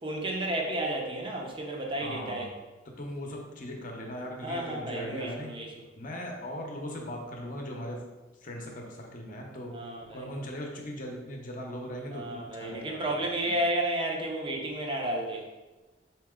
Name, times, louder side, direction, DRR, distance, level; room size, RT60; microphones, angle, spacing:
voice 1, 0.0-2.5 4.4-5.8 9.7-10.3 12.1-15.5, right 1 dB, 30° right, 0 dB, 0.6 m, -32 dB
voice 2, 2.0-2.5 3.0-5.5 6.0-8.0 8.4-9.8 10.1-13.5, equal, 45° left, 1 dB, 0.7 m, -39 dB
4.0 x 2.9 x 3.6 m, 1.2 s
head